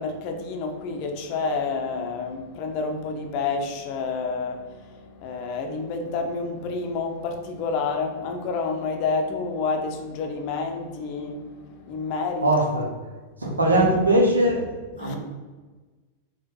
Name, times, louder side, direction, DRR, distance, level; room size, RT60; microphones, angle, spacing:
voice 1, 0.0-12.5 15.0-15.2, left 4 dB, 45° left, 4 dB, 0.5 m, -29 dB
voice 2, 12.4-12.9 13.4-14.6 15.0-15.2, right 1 dB, 80° right, 0 dB, 0.7 m, -20 dB
4.3 x 2.2 x 3.9 m, 1.3 s
figure-of-eight pair, 90°, 0 cm